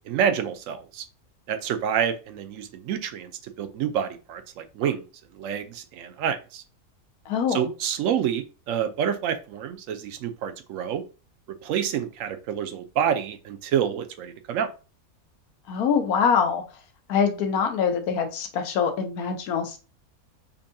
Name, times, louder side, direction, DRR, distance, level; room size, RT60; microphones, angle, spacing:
voice 1, 0.1-1.0 1.5-3.3 3.6-5.0 5.4-6.6 7.5-11.0 11.6-14.7, right 8 dB, 70° right, 8 dB, 0.9 m, -28 dB
voice 2, 7.3-7.7 15.7-16.6 17.1-19.8, left 6 dB, 85° left, 5 dB, 1.2 m, -24 dB
5.3 x 2.2 x 2.6 m, 0.33 s
omnidirectional pair, 1.5 m